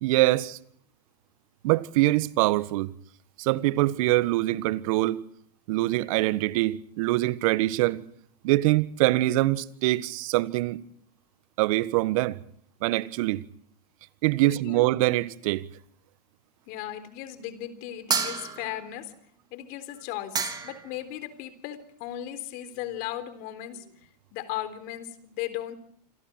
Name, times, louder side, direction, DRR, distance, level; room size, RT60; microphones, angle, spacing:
voice 1, 0.0-0.6 1.6-2.9 3.4-5.2 5.7-8.0 8.4-10.8 11.6-12.4 12.8-13.4 14.2-15.7, right 18 dB, 55° right, 1.5 m, -24 dB
voice 2, 14.4-14.8 16.7-19.1 19.5-25.8, left 12 dB, 50° left, 3.8 m, -37 dB
sound 1, 18.1-18.9 20.0-20.1 20.3-20.9, right 5 dB, 20° right, 3.5 m, -29 dB
27.5 x 27.5 x 4.5 m
hypercardioid pair, 105°, 21 cm